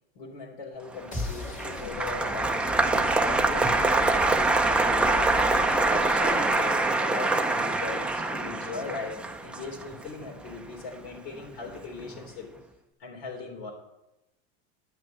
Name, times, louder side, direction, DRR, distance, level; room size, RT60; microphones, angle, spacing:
voice 1, 0.2-12.5 13.0-13.7, left 4 dB, 70° left, -3 dB, 3.6 m, -39 dB
Applause, 1.0-11.4 11.7-12.3, right 2 dB, 5° right, 0.5 m, -25 dB
sound 1, 1.1-7.1, left 3 dB, 20° left, 3.0 m, -39 dB
10.5 x 6.0 x 8.8 m, 0.92 s
supercardioid pair, 135°, 33 cm